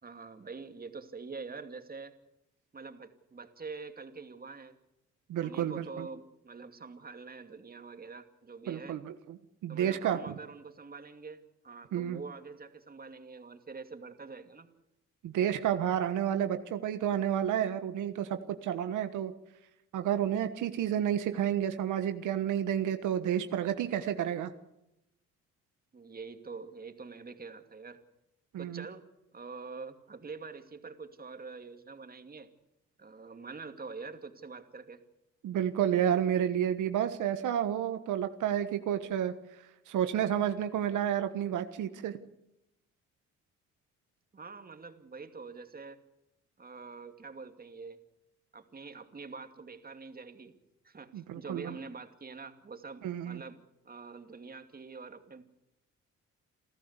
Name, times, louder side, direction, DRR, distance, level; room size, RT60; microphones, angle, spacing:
voice 1, 0.0-2.1 2.7-4.7 5.4-9.0 9.7-14.7 25.9-28.0 28.6-29.1 29.3-32.5 33.0-35.0 44.3-46.0 46.6-48.0 48.5-50.6 50.8-53.6 53.8-55.4, right 4 dB, 30° right, 7 dB, 2.5 m, -45 dB
voice 2, 5.3-6.1 8.7-9.4 9.6-10.3 11.9-12.2 15.2-19.3 19.9-24.5 28.5-28.8 35.4-39.3 39.9-42.2 51.1-51.7 53.0-53.4, right 10 dB, 80° right, 9 dB, 1.3 m, -30 dB
28.5 x 14.0 x 8.2 m, 0.88 s
cardioid pair, 90°, 30 cm